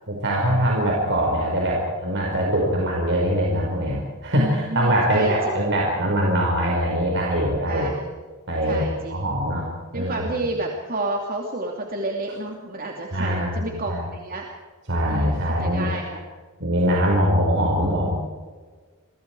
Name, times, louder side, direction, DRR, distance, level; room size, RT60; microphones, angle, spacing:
voice 1, 0.1-7.9 8.5-10.4 13.1-14.0 14.9-15.9 16.6-18.1, equal, 60° right, -2 dB, 5.3 m, -23 dB
voice 2, 4.4-5.6 7.7-8.1 8.7-9.2 9.9-14.5 15.1-16.2, right 2 dB, 45° right, 1 dB, 2.8 m, -30 dB
28.5 x 23.5 x 4.8 m, 1.5 s
head